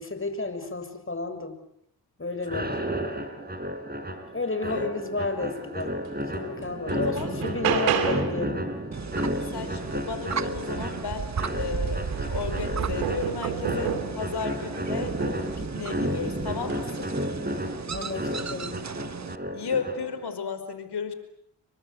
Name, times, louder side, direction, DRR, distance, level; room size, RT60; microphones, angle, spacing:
voice 1, 0.0-1.6 2.2-2.7 4.3-5.9 6.3-8.6 17.9-18.8, left 3 dB, 30° left, 8 dB, 6.8 m, -32 dB
sound 1, 2.4-20.3, equal, 20° right, 5.4 m, -32 dB
sound 2, 6.0-6.1 6.6-8.4 10.8-10.9 11.3-14.3 15.0-15.6 16.6-16.8, right 9 dB, 90° right, 2.7 m, -31 dB
voice 2, 6.9-7.3 7.7-7.9 9.5-15.2 15.6-17.1 19.5-21.1, left 6 dB, 60° left, 10 dB, 5.0 m, -34 dB
sound 3, 8.9-19.4, right 5 dB, 40° right, 1.5 m, -35 dB
29.0 x 24.0 x 8.1 m, 0.74 s
hypercardioid pair, 40°, 45 cm